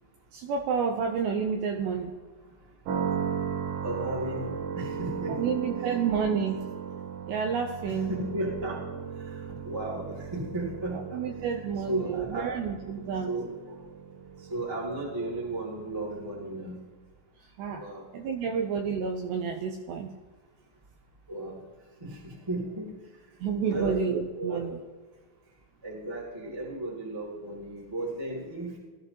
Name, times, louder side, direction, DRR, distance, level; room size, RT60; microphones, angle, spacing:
voice 1, 0.3-2.1 5.3-6.7 7.3-8.1 11.1-13.3 17.6-17.9 18.1-20.1 23.4-24.8, right 6 dB, 90° right, 3 dB, 2.5 m, -30 dB
sound 1, 2.9-16.7, right 7 dB, 70° right, 3.9 m, -37 dB
voice 2, 3.8-5.6 7.8-9.0 9.3-11.2 11.9-12.5 13.3-13.5 14.5-16.7 17.7-18.0 21.3-21.6 22.0-22.9 23.6-24.0 24.3-24.6 25.8-28.7, right 1 dB, 10° right, -3 dB, 1.3 m, -34 dB
20.0 x 13.5 x 3.0 m, 1.4 s
omnidirectional pair, 5.8 m